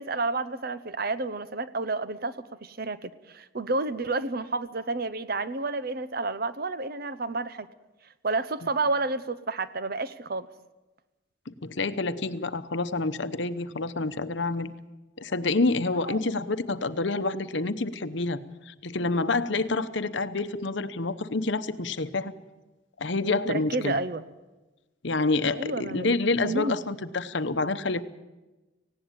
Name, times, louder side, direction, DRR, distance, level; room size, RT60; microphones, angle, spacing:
voice 1, 0.0-2.4 2.6-7.7 8.2-10.5 15.9-16.2 23.5-24.2 25.6-26.1 26.4-26.7, right 3 dB, 45° right, 13 dB, 0.9 m, -30 dB
voice 2, 11.5-14.7 15.2-22.3 23.0-24.0 25.0-28.0, left 3 dB, 60° left, 12 dB, 0.9 m, -28 dB
18.5 x 16.5 x 8.8 m, 1.1 s
head